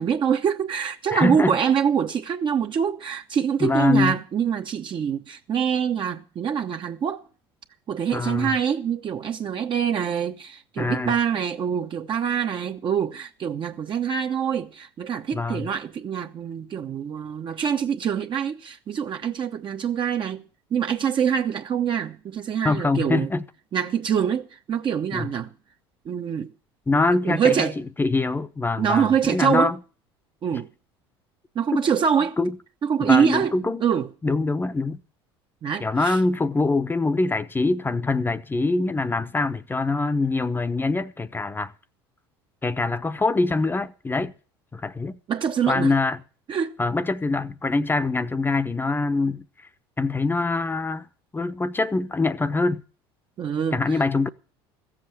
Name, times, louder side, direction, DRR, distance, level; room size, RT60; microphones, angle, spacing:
voice 1, 0.0-7.2 7.9-20.4 20.7-23.3 23.7-25.5 26.0-26.5 27.2-27.8 28.8-29.7 30.4-30.7 31.5-32.4 32.8-34.1 35.6-36.2 45.3-45.9 46.5-46.7 53.4-54.0, right 8 dB, 40° right, 1.0 m, -25 dB
voice 2, 1.1-1.6 3.6-4.2 8.1-8.5 10.8-11.1 15.3-15.7 22.6-23.4 25.1-25.3 26.9-27.7 28.0-29.7 31.7-31.8 32.4-32.5 33.0-33.8 34.2-35.0 35.8-41.7 42.6-44.3 44.7-45.2 45.6-46.2 46.8-49.4 50.0-51.1 51.3-52.8 53.7-54.3, left 3 dB, 15° left, 0.9 m, -24 dB
15.0 x 7.7 x 7.8 m
hypercardioid pair, 70°, 13 cm